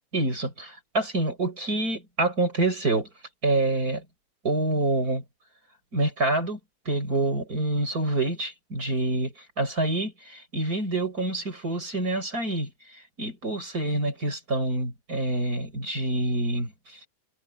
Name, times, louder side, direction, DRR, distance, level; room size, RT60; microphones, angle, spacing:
voice 1, 0.1-3.1 3.4-4.0 4.4-5.2 5.9-6.6 6.8-12.7 13.2-16.7, right 2 dB, 25° right, 6.6 m, -27 dB
omnidirectional pair, 3.5 m